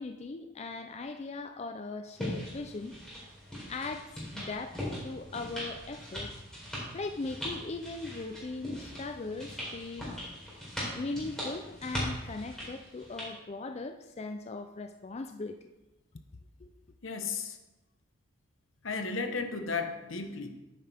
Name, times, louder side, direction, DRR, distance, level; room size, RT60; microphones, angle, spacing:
voice 1, 0.0-2.9 3.7-4.1 4.3-4.7 5.0-6.3 6.9-10.2 10.9-15.7 16.6-16.7, left 3 dB, 35° left, 6 dB, 0.4 m, -39 dB
sound 1, 2.2-13.3, equal, 5° left, 3.6 m, -40 dB
voice 2, 17.0-17.6 18.8-20.5, left 4 dB, 75° left, 6 dB, 1.0 m, -34 dB
9.9 x 8.9 x 3.5 m, 1.0 s
head